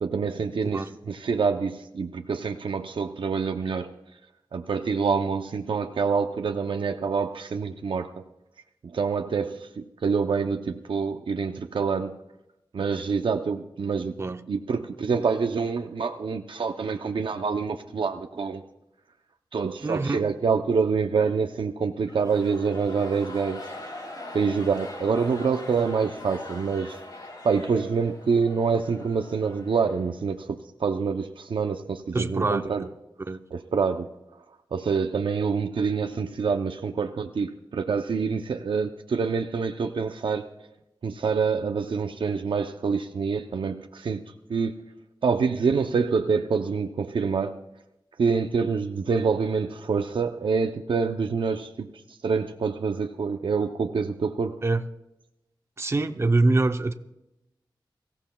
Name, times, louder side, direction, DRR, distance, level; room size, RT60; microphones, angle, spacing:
voice 1, 0.0-4.0 4.5-8.2 8.9-12.2 12.7-14.1 14.5-18.6 19.5-23.6 24.3-27.0 27.4-32.9 33.5-34.1 34.7-40.5 41.0-44.2 44.5-44.7 45.2-47.6 48.2-54.6, right 5 dB, 85° right, 0.6 m, -26 dB
voice 2, 19.8-20.2 32.1-32.6 33.3-33.4 54.6-54.8 55.8-56.9, right 2 dB, 30° right, 0.6 m, -24 dB
sound 1, 22.0-30.5, left 2 dB, 55° left, 3.2 m, -42 dB
23.5 x 15.5 x 2.3 m
wide cardioid pair, 100°, 8 cm